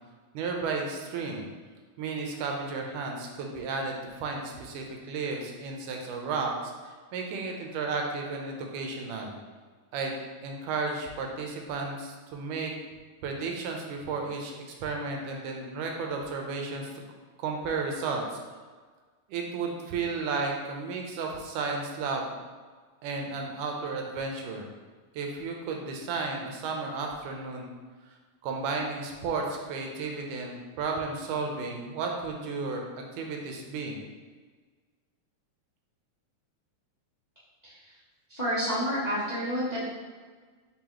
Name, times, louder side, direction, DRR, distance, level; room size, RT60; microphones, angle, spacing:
voice 1, 0.3-1.5 2.0-9.3 9.9-10.2 10.4-12.7 13.2-14.5 14.8-16.9 17.4-18.4 19.3-22.3 23.0-24.7 25.1-27.7 28.4-32.9 33.1-34.0, right 4 dB, 85° right, 1 dB, 2.2 m, -33 dB
voice 2, 37.6-37.9 38.3-39.9, equal, 65° left, -13 dB, 0.4 m, -30 dB
4.6 x 3.8 x 2.9 m, 1.5 s
omnidirectional pair, 3.6 m